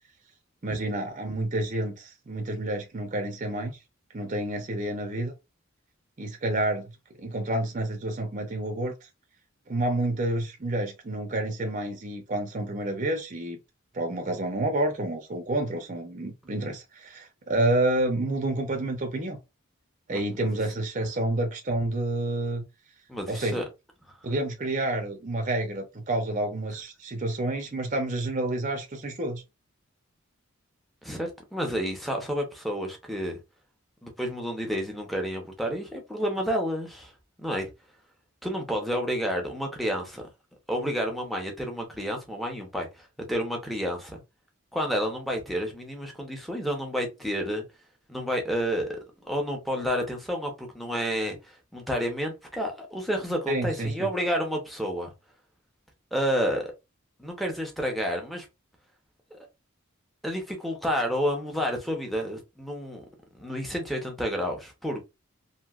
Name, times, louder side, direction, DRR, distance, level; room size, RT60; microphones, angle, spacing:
voice 1, 0.6-3.8 4.1-5.3 6.2-6.9 7.2-8.9 9.7-13.6 13.9-19.4 20.1-22.6 23.3-23.6 24.2-29.4 53.5-54.1, right 1 dB, 35° right, 0.6 m, -29 dB
voice 2, 20.1-20.5 23.1-23.6 31.0-33.4 34.0-37.1 37.4-37.7 38.4-40.2 40.7-44.2 44.7-47.6 48.1-55.1 56.1-56.7 57.2-58.5 60.2-63.0 63.4-65.0, equal, ahead, 0.7 m, -30 dB
3.0 x 2.7 x 2.4 m
head